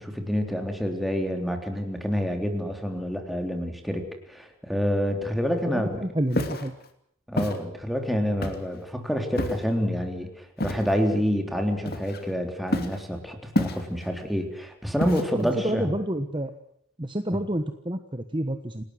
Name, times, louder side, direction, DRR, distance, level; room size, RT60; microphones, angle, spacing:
voice 1, 0.0-6.1 7.3-15.9 17.3-17.4, equal, ahead, 3 dB, 3.5 m, -28 dB
voice 2, 5.7-6.7 15.3-16.5 17.0-18.8, right 1 dB, 25° right, 8 dB, 1.2 m, -29 dB
Walk footsteps, 6.3-6.7 7.4-7.6 8.4-8.8 9.4-9.7 10.6-10.9 11.9-12.3 12.7-13.0 13.6-14.1 15.0-15.5, left 1 dB, 45° left, 2.9 m, -28 dB
28.5 x 18.5 x 7.9 m, 0.68 s
head